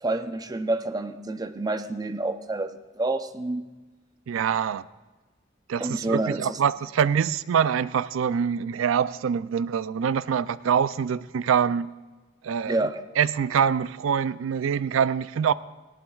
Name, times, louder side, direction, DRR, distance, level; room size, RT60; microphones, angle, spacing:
voice 1, 0.0-3.6 5.8-6.6 12.7-13.0, right 2 dB, 20° right, 0.5 m, -28 dB
voice 2, 4.3-4.8 5.7-11.9 12.4-12.8 13.2-15.5, right 7 dB, 85° right, 0.4 m, -24 dB
18.5 x 17.0 x 2.4 m
head